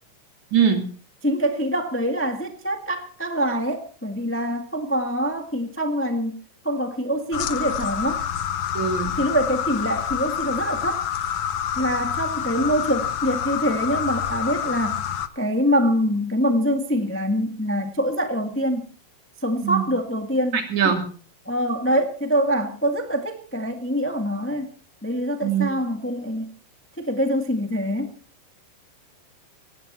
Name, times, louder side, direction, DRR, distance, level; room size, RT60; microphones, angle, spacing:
voice 1, 0.5-0.9 8.8-9.2 19.6-19.9 20.5-21.0 25.4-25.7, right 7 dB, 55° right, 6 dB, 3.9 m, -22 dB
voice 2, 1.2-8.2 9.2-11.1 11.7-15.0 15.3-18.9 19.4-20.9 21.5-24.7 25.0-26.5 27.0-28.1, equal, 20° left, 6 dB, 0.3 m, -24 dB
sound 1, 7.3-15.3, left 9 dB, 85° left, 1.2 m, -27 dB
18.5 x 16.0 x 4.3 m, 0.41 s
omnidirectional pair, 4.0 m